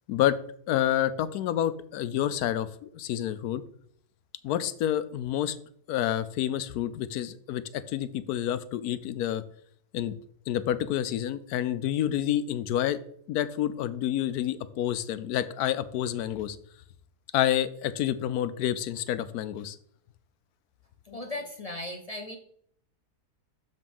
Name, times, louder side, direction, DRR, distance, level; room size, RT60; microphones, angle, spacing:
voice 1, 0.7-3.6 4.4-5.6 5.9-9.4 9.9-10.1 10.5-13.0 13.3-16.6 17.3-19.8, left 11 dB, 80° left, 14 dB, 1.1 m, -28 dB
voice 2, 21.0-22.4, left 1 dB, 40° left, 4 dB, 0.5 m, -37 dB
6.8 x 5.3 x 5.4 m, 0.65 s
omnidirectional pair, 1.6 m